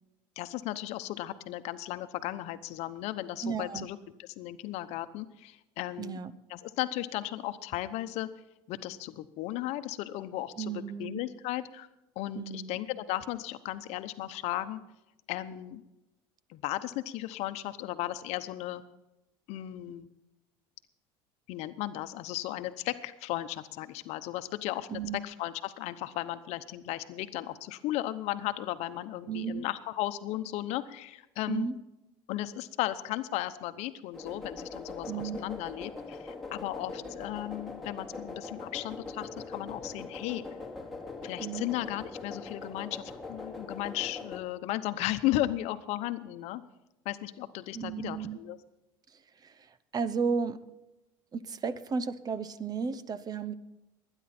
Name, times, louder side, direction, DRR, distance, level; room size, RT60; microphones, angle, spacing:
voice 1, 0.4-6.2 6.5-8.3 8.7-11.9 12.2-14.8 15.3-15.8 16.5-18.8 19.5-20.1 21.5-31.7 32.3-40.4 41.2-46.6 47.0-48.6, left 15 dB, 65° left, 11 dB, 0.9 m, -35 dB
voice 2, 3.4-3.9 6.0-6.3 10.6-11.2 12.3-12.8 24.9-25.2 29.3-29.6 31.5-31.8 35.1-35.4 41.4-41.7 47.7-48.4 49.1-50.6 51.3-53.5, right 5 dB, 35° right, 15 dB, 0.9 m, -34 dB
sound 1, 34.1-44.4, left 3 dB, ahead, 2.7 m, -42 dB
21.5 x 10.0 x 4.3 m, 0.95 s
supercardioid pair, 100°, 12 cm